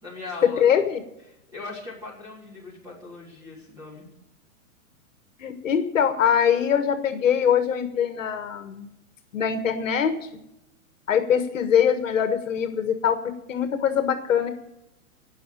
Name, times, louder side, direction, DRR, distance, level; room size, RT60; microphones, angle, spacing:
voice 1, 0.0-0.6 1.5-4.1, left 2 dB, 10° right, -4 dB, 3.6 m, -39 dB
voice 2, 0.6-1.0 5.4-8.9 9.3-10.2 11.1-13.2 13.5-14.5, left 8 dB, 65° left, 8 dB, 1.6 m, -22 dB
18.0 x 6.3 x 8.6 m, 0.86 s
hypercardioid pair, 180°, 42 cm